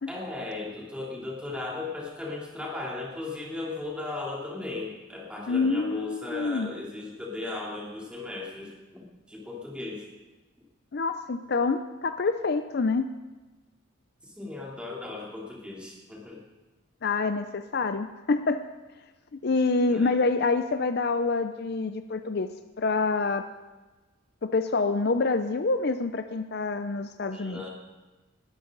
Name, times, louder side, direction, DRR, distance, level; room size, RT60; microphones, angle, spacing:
voice 1, 0.1-10.1 14.2-16.4 19.9-20.2 27.3-27.7, left 2 dB, 5° right, -4 dB, 3.1 m, -37 dB
voice 2, 5.5-6.7 10.9-13.1 17.0-18.6 19.3-22.5 22.8-23.5 24.4-27.6, left 3 dB, 50° left, 9 dB, 0.5 m, -26 dB
19.5 x 13.5 x 3.9 m, 1.2 s
head